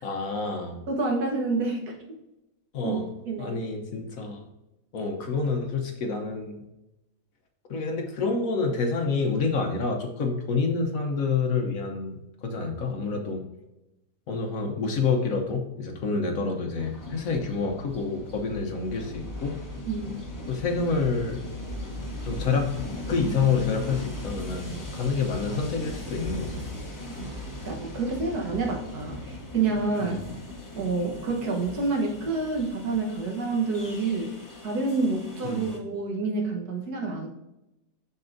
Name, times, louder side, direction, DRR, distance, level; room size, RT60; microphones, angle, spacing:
voice 1, 0.0-0.8 2.7-3.1 3.4-4.4 4.9-6.6 7.7-13.4 14.3-19.5 20.5-21.4 22.2-22.7 23.1-26.6 30.0-30.2 35.4-35.7, left 4 dB, 60° left, 3 dB, 1.2 m, -28 dB
voice 2, 0.9-2.0 2.8-3.0 3.3-3.7 19.9-20.1 27.1-27.3 27.6-30.2 30.8-34.3 34.6-37.3, right 3 dB, 70° right, 1 dB, 1.7 m, -28 dB
Train, 16.8-35.8, left 1 dB, 20° left, 0.6 m, -38 dB
6.8 x 6.6 x 2.6 m, 0.93 s
omnidirectional pair, 1.8 m